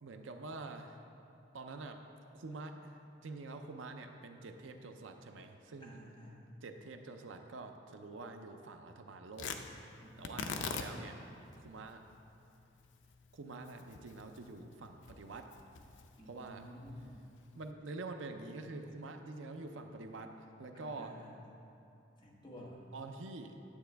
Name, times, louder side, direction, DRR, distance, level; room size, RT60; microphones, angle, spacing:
voice 1, 0.0-1.1 1.5-2.0 2.3-6.0 6.6-9.6 10.2-11.2 11.6-12.0 13.3-15.5 16.3-16.6 17.5-21.1 22.9-23.6, right 3 dB, 75° right, 6 dB, 0.5 m, -46 dB
voice 2, 5.8-6.5 10.0-10.7 16.1-17.3 20.7-21.4 22.2-22.9, equal, 25° left, -4 dB, 1.3 m, -52 dB
Tearing, 9.3-17.7, left 5 dB, 70° left, 0.5 m, -46 dB
9.9 x 8.0 x 3.4 m, 2.8 s
head